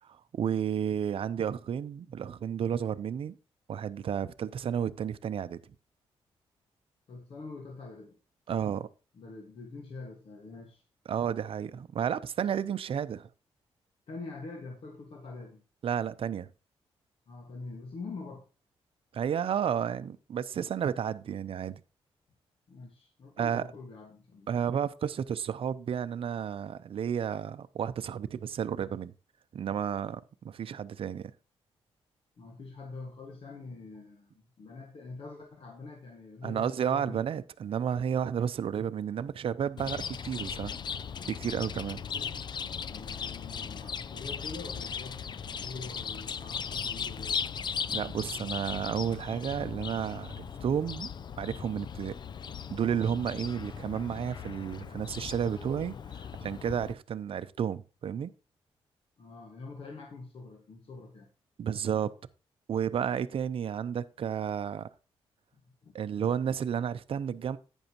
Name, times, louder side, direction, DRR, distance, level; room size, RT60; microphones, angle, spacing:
voice 1, 0.0-3.3 3.7-5.6 8.5-8.9 11.1-13.3 15.8-16.5 19.1-21.8 23.4-23.7 24.5-29.1 29.5-31.3 36.4-40.7 41.3-42.0 47.9-51.1 51.4-52.1 52.7-55.9 56.4-58.3 61.6-62.1 62.7-64.9 65.9-67.6, right 8 dB, 60° right, 0.6 m, -32 dB
voice 2, 7.1-8.2 9.1-10.8 14.1-15.6 17.3-18.5 22.7-24.5 32.4-37.2 42.1-42.4 42.9-47.4 59.2-61.3 65.5-66.0, left 3 dB, 60° left, 1.7 m, -45 dB
Chirp tweet, 39.8-56.9, left 7 dB, 45° left, 0.4 m, -38 dB
11.0 x 9.1 x 2.9 m
cardioid pair, 95°, 11 cm